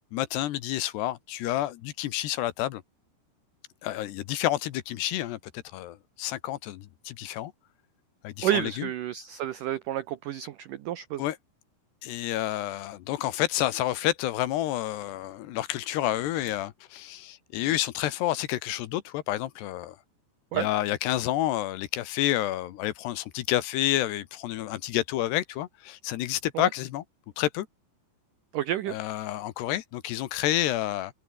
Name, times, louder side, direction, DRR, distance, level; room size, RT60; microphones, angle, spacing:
voice 1, 0.1-2.8 3.8-7.5 8.2-8.9 11.2-11.4 12.0-20.0 20.5-27.0 27.4-27.7 28.9-31.1, left 14 dB, 75° left, 3.2 m, -29 dB
voice 2, 8.4-11.2 20.5-20.7 26.5-26.7 28.5-28.9, right 11 dB, 90° right, 1.8 m, -30 dB
omnidirectional pair, 5.1 m